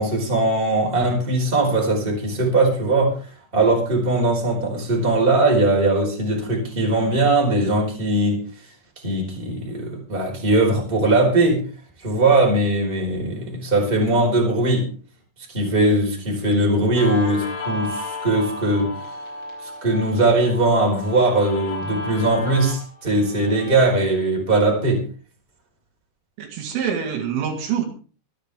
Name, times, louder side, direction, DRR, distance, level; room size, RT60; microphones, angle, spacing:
voice 1, 0.0-3.1 3.5-8.4 9.0-11.6 12.0-14.9 15.5-18.9 19.6-25.0, right 2 dB, 10° right, -1 dB, 4.0 m, -20 dB
Guitar, 17.0-24.0, left 2 dB, 75° left, 7.4 m, -33 dB
voice 2, 26.4-27.9, right 8 dB, 75° right, 2 dB, 4.5 m, -25 dB
24.0 x 10.0 x 3.5 m, 0.38 s
omnidirectional pair, 5.9 m